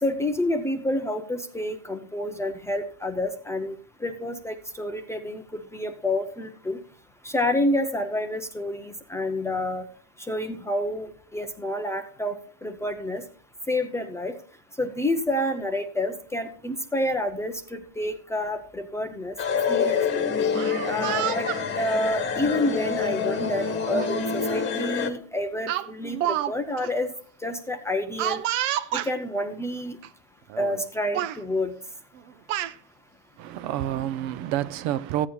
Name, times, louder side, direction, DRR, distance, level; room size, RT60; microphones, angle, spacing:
voice 1, 0.0-5.4 5.7-6.8 7.2-9.9 10.3-13.2 13.7-14.3 14.8-19.4 19.7-20.2 20.8-21.5 21.8-27.1 27.4-28.4 28.9-30.0 30.6-31.7, left 1 dB, 10° left, 0.4 m, -28 dB
sound 1, 19.4-25.1, left 6 dB, 30° left, 1.1 m, -26 dB
Speech, 20.4-21.6 22.5-22.8 24.0-24.1 24.5-24.7 25.7-26.5 26.8-26.9 28.2-29.1 30.0-30.1 30.5-30.8 31.1-31.4 32.2-32.7, right 13 dB, 80° right, 0.8 m, -29 dB
voice 2, 33.4-35.3, right 12 dB, 50° right, 0.5 m, -28 dB
15.0 x 8.6 x 2.3 m
supercardioid pair, 150°, 37 cm